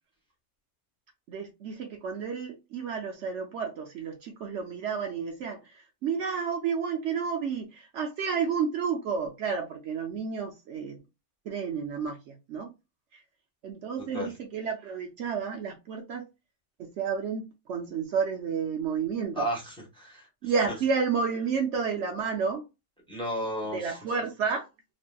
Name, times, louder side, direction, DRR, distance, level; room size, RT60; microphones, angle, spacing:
voice 1, 1.3-11.0 11.5-12.7 13.1-13.2 13.6-16.2 16.8-19.5 20.4-22.6 23.7-24.7, right 6 dB, 65° right, 0.8 m, -31 dB
voice 2, 19.3-20.5 23.1-24.0, equal, 5° left, 1.0 m, -33 dB
3.1 x 2.7 x 2.2 m
omnidirectional pair, 1.4 m